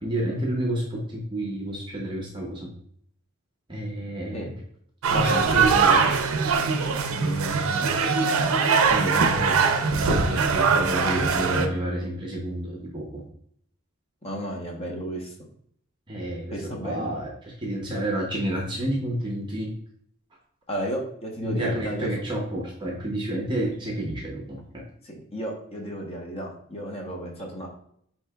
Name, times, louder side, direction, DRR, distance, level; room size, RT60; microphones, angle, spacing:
voice 1, 0.0-2.7 3.7-4.5 5.1-6.1 7.1-7.9 8.9-9.6 9.9-13.2 16.1-19.7 21.4-24.8, right 1 dB, 20° right, -1 dB, 0.7 m, -30 dB
sound 1, 5.0-11.7, right 5 dB, 75° right, 0.5 m, -22 dB
voice 2, 14.2-15.3 16.5-17.2 20.7-22.1 25.0-27.7, right 1 dB, 30° left, 0 dB, 0.9 m, -33 dB
8.1 x 2.8 x 2.3 m, 0.66 s
head